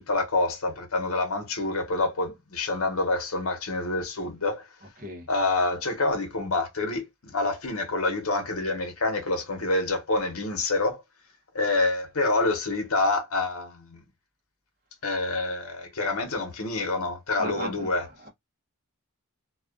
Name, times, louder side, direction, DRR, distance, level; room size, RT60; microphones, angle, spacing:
voice 1, 0.0-4.6 5.3-11.0 11.5-14.0 15.0-18.1, left 2 dB, 65° left, 1.0 m, -27 dB
voice 2, 17.4-17.9, right 1 dB, 40° right, 0.7 m, -36 dB
2.4 x 2.4 x 2.3 m
head